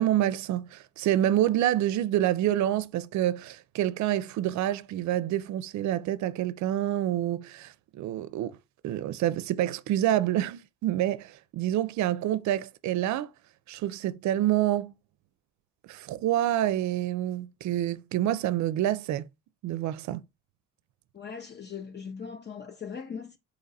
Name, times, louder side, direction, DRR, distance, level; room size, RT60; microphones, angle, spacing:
voice 1, 0.0-8.6 8.8-13.3 13.7-14.9 15.9-19.3 19.6-20.2, right 12 dB, 70° right, 0.5 m, -27 dB
voice 2, 21.1-23.4, left 6 dB, 35° left, 0.6 m, -39 dB
4.0 x 2.9 x 3.9 m
cardioid pair, 90°, 30 cm